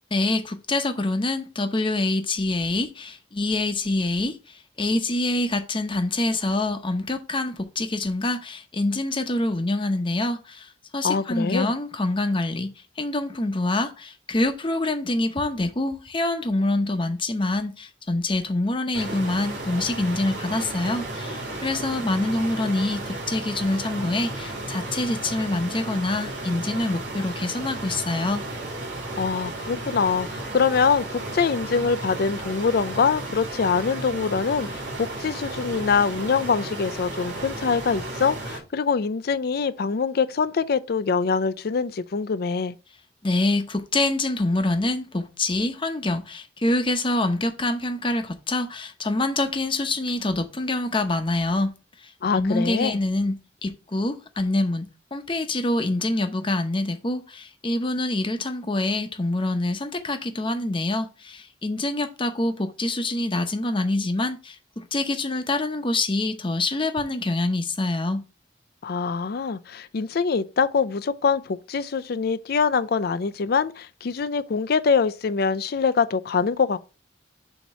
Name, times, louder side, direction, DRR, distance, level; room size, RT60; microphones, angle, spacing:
voice 1, 0.1-28.4 43.2-51.7 52.0-68.2, left 2 dB, 30° left, 0.8 m, -26 dB
voice 2, 11.0-11.7 29.2-42.7 52.2-53.0 68.8-76.8, left 5 dB, 60° left, 0.5 m, -24 dB
sound 1, 18.9-38.6, right 2 dB, 75° right, 2.8 m, -34 dB
7.1 x 2.9 x 5.5 m
head